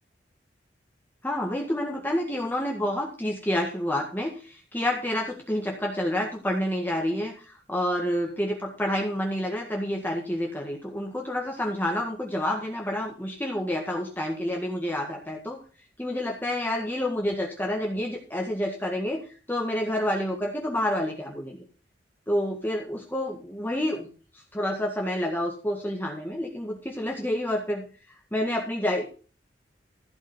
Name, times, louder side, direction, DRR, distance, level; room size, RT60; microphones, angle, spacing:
voice 1, 1.2-15.6 16.0-19.2 19.5-21.6 22.3-24.1 24.5-27.9 28.3-29.0, left 1 dB, 10° left, 0 dB, 1.9 m, -28 dB
15.0 x 5.5 x 6.8 m, 0.38 s
head